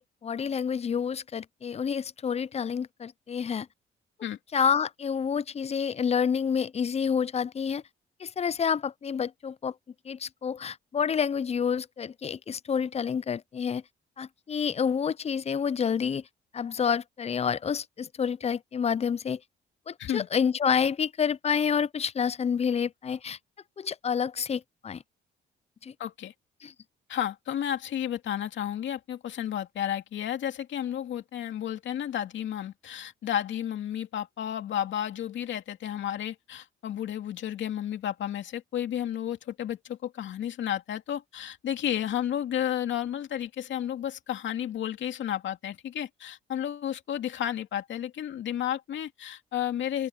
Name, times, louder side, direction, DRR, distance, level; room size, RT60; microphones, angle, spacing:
voice 1, 0.0-3.7 4.5-7.8 8.2-9.7 10.0-13.8 14.2-16.2 16.5-19.4 19.9-23.4 23.8-25.0 25.8-25.9 26.6-26.7, left 7 dB, 30° left, 0.5 m, -28 dB
voice 2, 26.0-26.3 27.1-50.1, left 10 dB, 70° left, 2.4 m, -32 dB
open air
cardioid pair, 90°, 20 cm